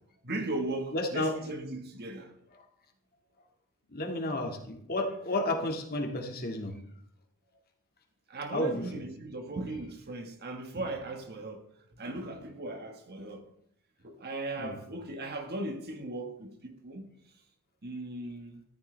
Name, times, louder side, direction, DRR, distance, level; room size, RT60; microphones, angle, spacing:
voice 1, 0.2-2.3 8.3-11.6 12.0-13.5 14.0-17.1 17.8-18.6, right 2 dB, 45° right, 1.6 m, -37 dB
voice 2, 0.9-1.3 3.9-6.8 8.5-8.8 14.6-14.8, left 1 dB, 45° left, 2.1 m, -32 dB
14.0 x 13.0 x 3.4 m
head